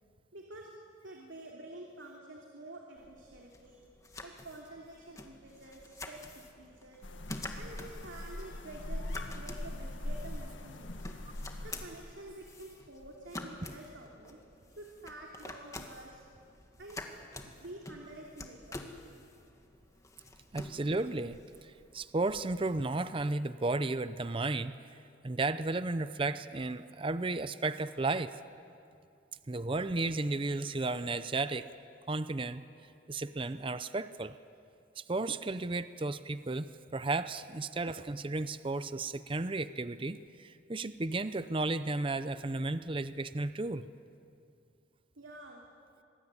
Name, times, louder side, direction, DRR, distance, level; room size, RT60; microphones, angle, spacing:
voice 1, 0.3-0.7 1.0-3.8 4.2-7.0 7.6-11.1 11.6-14.4 14.8-16.5 16.7-17.0 17.4-18.8 45.2-45.6, right 1 dB, 90° right, -1 dB, 2.9 m, -49 dB
sound 1, 3.0-22.6, left 2 dB, 15° left, 1.8 m, -48 dB
sound 2, 7.0-12.3, left 1 dB, 90° left, 1.9 m, -41 dB
voice 2, 20.5-24.8 25.2-28.3 29.5-31.7 32.1-32.6 33.1-34.4 35.0-43.9, right 2 dB, 30° right, 13 dB, 0.6 m, -34 dB
26.0 x 20.5 x 9.8 m, 2.4 s
head